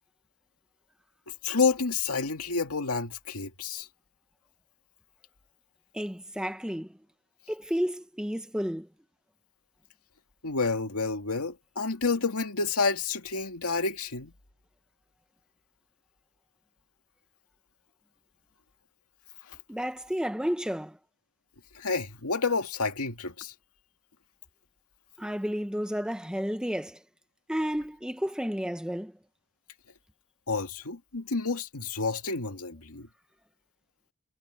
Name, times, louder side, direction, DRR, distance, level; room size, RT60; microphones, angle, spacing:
voice 1, 1.4-3.9 10.4-14.3 19.5-19.6 21.7-23.5 30.5-33.1, left 4 dB, 85° left, 2.2 m, -29 dB
voice 2, 5.9-6.9 7.5-8.9 19.7-21.0 25.2-27.0 27.5-29.1, equal, 5° right, 0.9 m, -31 dB
head